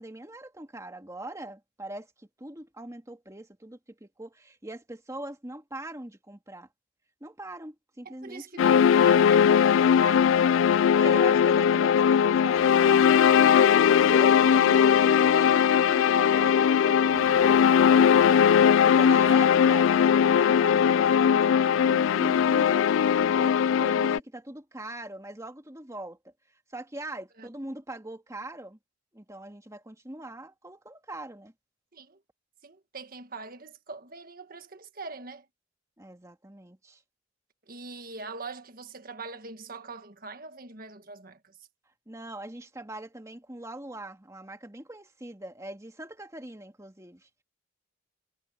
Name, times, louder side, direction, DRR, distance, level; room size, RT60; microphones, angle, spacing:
voice 1, 0.0-6.7 7.2-8.6 10.9-13.2 14.0-26.3 26.7-28.8 29.1-31.5 36.0-37.0 42.1-47.3, right 1 dB, 15° right, 2.0 m, -41 dB
voice 2, 8.1-10.4 27.4-27.5 31.9-32.2 32.6-35.5 37.7-41.6, right 4 dB, 50° right, 1.7 m, -43 dB
sound 1, 8.6-24.2, left 8 dB, 85° left, 0.3 m, -20 dB
head